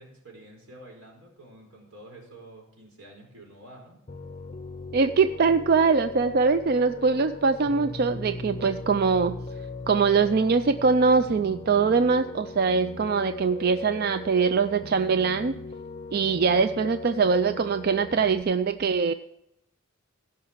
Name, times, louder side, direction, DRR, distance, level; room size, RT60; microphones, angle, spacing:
voice 1, 0.0-4.0, right 1 dB, 80° right, 1 dB, 4.4 m, -48 dB
Piano, 4.1-18.4, left 3 dB, 30° left, 0.5 m, -39 dB
voice 2, 4.9-9.4 9.9-15.5 16.1-19.1, right 5 dB, 45° right, 10 dB, 0.3 m, -22 dB
16.0 x 5.7 x 7.2 m, 0.84 s
head